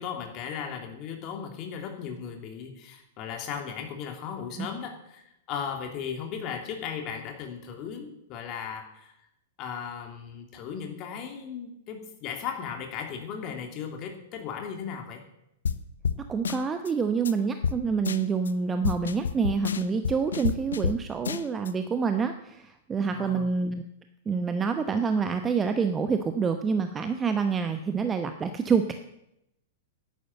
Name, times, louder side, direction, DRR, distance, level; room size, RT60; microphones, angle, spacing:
voice 1, 0.0-5.2 5.5-9.1 9.6-15.2 23.0-23.5, left 7 dB, 35° left, 3 dB, 3.0 m, -36 dB
sound 1, 15.7-15.8 16.0-16.2 16.5-16.9 17.3-17.4 17.6-17.8 18.1-18.5 18.8-21.0 21.3-21.7, left 6 dB, 70° left, 0.8 m, -29 dB
voice 2, 16.3-23.9 24.3-28.9, right 5 dB, 20° right, 8 dB, 0.9 m, -27 dB
11.0 x 10.5 x 7.8 m, 0.83 s
figure-of-eight pair, 100°, 0 cm